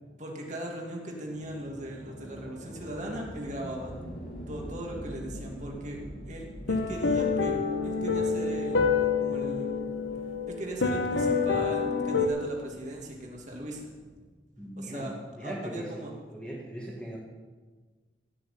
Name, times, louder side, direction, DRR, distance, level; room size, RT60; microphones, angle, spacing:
voice 1, 0.2-4.0 4.5-6.0 6.3-7.6 7.8-9.7 10.6-13.9 14.8-15.1 15.4-16.1, right 1 dB, 40° right, -1 dB, 2.7 m, -39 dB
sound 1, 1.3-14.3, equal, 50° left, 3.1 m, -45 dB
sound 2, 6.7-12.3, left 5 dB, 90° left, 1.4 m, -27 dB
voice 2, 14.6-17.2, equal, 5° left, -6 dB, 2.1 m, -40 dB
16.0 x 6.8 x 8.7 m, 1.4 s
head